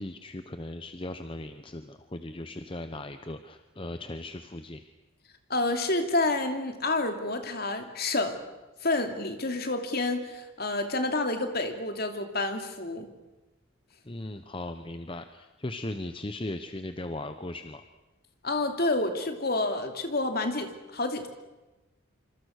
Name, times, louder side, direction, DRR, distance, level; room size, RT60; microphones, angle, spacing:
voice 1, 0.0-4.8 14.0-17.8, left 1 dB, 25° left, 9 dB, 0.9 m, -38 dB
voice 2, 5.5-8.4 8.8-13.1 18.4-21.3, left 2 dB, 45° left, 6 dB, 2.7 m, -29 dB
26.5 x 26.0 x 6.6 m, 1.1 s
head